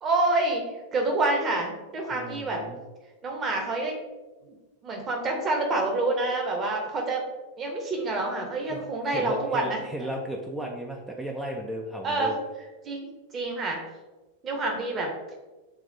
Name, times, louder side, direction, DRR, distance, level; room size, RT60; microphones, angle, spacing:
voice 1, 0.0-0.6 0.9-2.6 3.2-4.0 4.8-7.2 7.6-9.8 12.0-12.4 12.8-13.1 13.3-13.8 14.4-15.1, right 2 dB, 25° right, 1 dB, 1.0 m, -27 dB
voice 2, 2.1-2.8 8.7-12.4, right 1 dB, 5° right, 0 dB, 0.5 m, -35 dB
7.1 x 2.5 x 2.6 m, 1.2 s
figure-of-eight pair, 90°, 0 cm